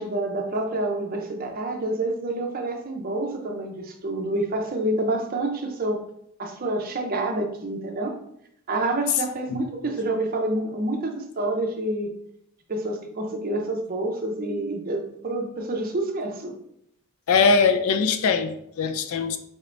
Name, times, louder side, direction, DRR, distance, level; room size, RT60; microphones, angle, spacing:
voice 1, 0.0-6.0 6.4-8.2 8.7-12.1 12.7-16.5, right 2 dB, 40° right, 3 dB, 0.5 m, -28 dB
voice 2, 17.3-19.4, left 5 dB, 70° left, 8 dB, 0.4 m, -21 dB
4.2 x 3.2 x 2.5 m, 0.72 s
head